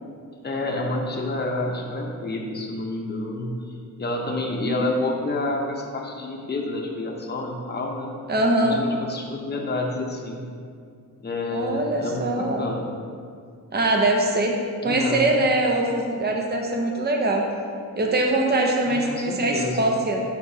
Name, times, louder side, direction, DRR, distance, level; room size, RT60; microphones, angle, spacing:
voice 1, 0.4-3.6 4.0-8.1 8.6-10.5 11.2-12.9 14.8-15.2 18.9-19.9, left 2 dB, 30° left, -1 dB, 0.7 m, -29 dB
voice 2, 8.3-8.8 11.5-12.7 13.7-14.6 14.8-17.5 18.0-20.2, right 2 dB, 30° right, 1 dB, 0.7 m, -22 dB
6.5 x 5.3 x 2.8 m, 2.3 s
wide cardioid pair, 125°, 35 cm